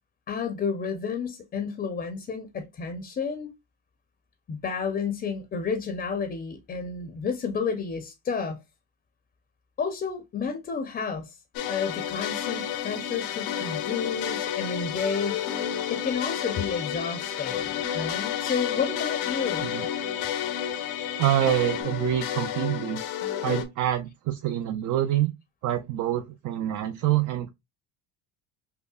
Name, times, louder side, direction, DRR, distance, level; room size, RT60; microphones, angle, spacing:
voice 1, 0.3-3.5 4.5-8.6 9.8-11.4 11.6-15.5 15.9-19.7, left 5 dB, 25° left, 0.6 m, -31 dB
sound 1, 11.5-23.6, left 9 dB, 85° left, 1.0 m, -32 dB
Musical instrument, 11.6-21.8, left 11 dB, 65° left, 0.6 m, -37 dB
voice 2, 21.2-23.0 23.4-25.3 25.6-27.5, right 12 dB, 55° right, 0.5 m, -26 dB
5.5 x 2.0 x 2.3 m
cardioid pair, 135°, 38 cm